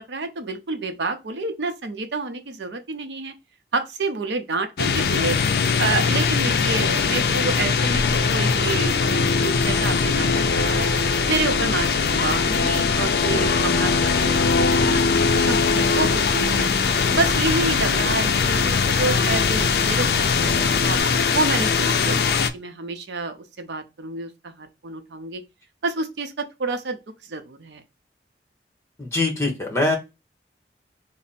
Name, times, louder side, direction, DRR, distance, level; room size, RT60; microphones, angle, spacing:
voice 1, 0.0-3.3 3.7-5.4 5.8-10.9 11.3-15.0 15.4-16.7 17.1-21.0 21.3-25.4 25.8-27.8, right 3 dB, 80° right, 0.6 m, -29 dB
sound 1, 4.8-22.5, left 5 dB, 60° left, 0.4 m, -21 dB
sound 2, 9.6-21.0, equal, 25° right, 0.8 m, -36 dB
voice 2, 29.0-30.0, left 2 dB, 15° left, 0.9 m, -23 dB
3.3 x 2.0 x 4.0 m
head